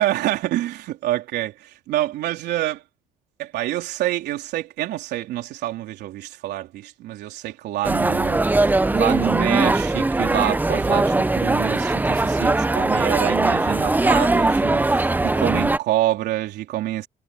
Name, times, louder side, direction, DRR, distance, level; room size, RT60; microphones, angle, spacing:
voice 1, 0.0-2.8 3.4-17.1, right 14 dB, 80° right, 3.6 m, -27 dB
sound 1, 7.8-15.8, right 2 dB, 10° right, 0.8 m, -20 dB
cardioid pair, 110°, 17 cm